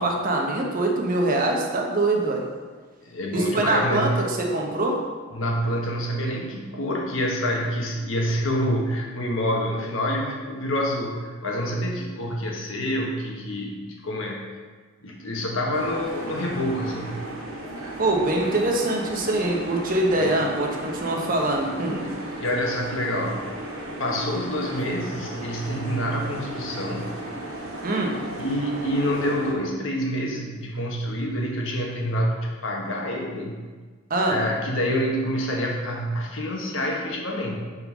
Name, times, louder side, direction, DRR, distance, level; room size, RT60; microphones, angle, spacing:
voice 1, 0.0-2.4 3.3-5.0 18.0-22.1 27.8-28.2 34.1-34.4, right 2 dB, 45° right, 0 dB, 1.1 m, -24 dB
voice 2, 3.0-4.2 5.3-14.4 15.0-17.2 20.1-20.3 21.6-21.8 22.4-23.5 24.0-27.2 28.4-33.6 34.3-37.6, equal, 70° left, 0 dB, 1.3 m, -27 dB
sound 1, 15.7-29.5, right 1 dB, 85° right, 1.5 m, -35 dB
5.5 x 5.4 x 5.5 m, 1.4 s
head